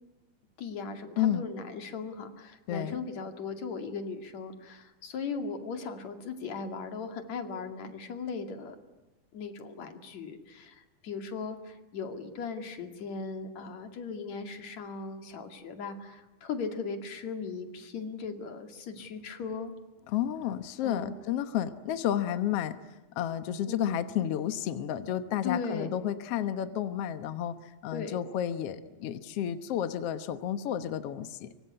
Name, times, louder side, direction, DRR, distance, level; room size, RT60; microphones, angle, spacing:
voice 1, 0.6-8.7 9.3-19.7 20.8-21.1 23.6-24.0 25.4-25.9 27.9-28.2, left 5 dB, 55° left, 6 dB, 3.3 m, -38 dB
voice 2, 20.1-22.8 23.1-31.5, left 10 dB, 70° left, 10 dB, 1.5 m, -31 dB
25.0 x 24.5 x 9.7 m, 1.1 s
omnidirectional pair, 4.2 m